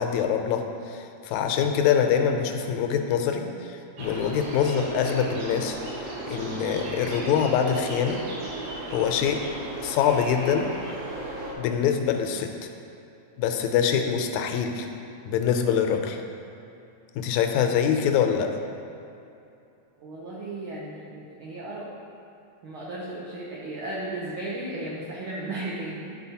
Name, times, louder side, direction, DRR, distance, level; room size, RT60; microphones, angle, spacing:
voice 1, 0.0-8.2 8.9-9.4 9.8-10.7 11.6-12.7 13.4-14.9 15.3-16.2 17.2-18.5, left 8 dB, 80° left, 4 dB, 1.8 m, -24 dB
sound 1, 4.0-11.5, right 2 dB, 65° right, 1.6 m, -35 dB
voice 2, 20.0-21.9 22.6-26.2, right 2 dB, 85° right, -5 dB, 1.1 m, -35 dB
11.0 x 4.4 x 2.8 m, 2.7 s
omnidirectional pair, 3.3 m